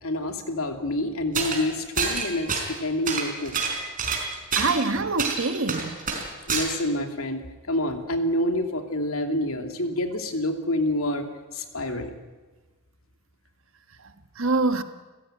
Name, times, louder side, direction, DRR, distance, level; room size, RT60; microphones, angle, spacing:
voice 1, 0.0-3.5 6.5-11.2 11.5-12.1, left 1 dB, 75° left, 5 dB, 2.9 m, -27 dB
sound 1, 1.3-1.6 2.0-2.8 3.1-4.9 5.2-6.7, right 5 dB, 40° right, 4.8 m, -27 dB
voice 2, 4.5-6.0 11.9-12.0 14.4-14.8, right 3 dB, 60° right, 9 dB, 1.6 m, -25 dB
29.5 x 16.0 x 9.0 m, 1.2 s
head